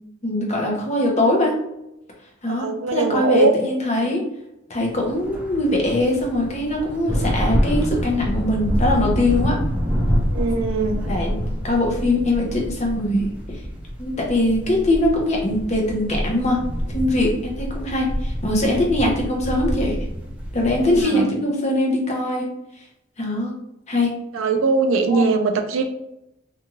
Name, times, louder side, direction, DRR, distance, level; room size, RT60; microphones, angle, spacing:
voice 1, 0.2-1.6 2.4-4.2 4.7-9.6 11.1-13.6 14.0-16.6 16.9-20.0 20.5-22.5 23.2-23.5 23.9-24.1 25.1-25.2, left 1 dB, 35° left, 0 dB, 0.7 m, -22 dB
voice 2, 2.5-3.5 10.3-11.1 20.9-21.3 24.3-25.9, right 4 dB, 85° right, 6 dB, 0.4 m, -21 dB
sound 1, 5.0-21.1, equal, 5° right, 0.5 m, -26 dB
2.6 x 2.4 x 2.9 m, 0.84 s
head